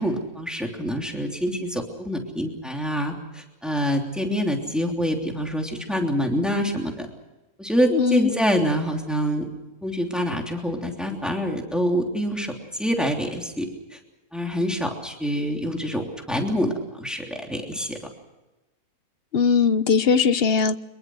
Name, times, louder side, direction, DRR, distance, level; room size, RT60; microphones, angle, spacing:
voice 1, 0.0-7.1 7.6-9.5 9.8-14.0 14.3-18.0, equal, ahead, 1 dB, 3.1 m, -26 dB
voice 2, 7.9-8.3 19.3-20.7, left 5 dB, 45° left, 13 dB, 1.0 m, -19 dB
24.5 x 22.5 x 6.3 m, 1.1 s
omnidirectional pair, 1.6 m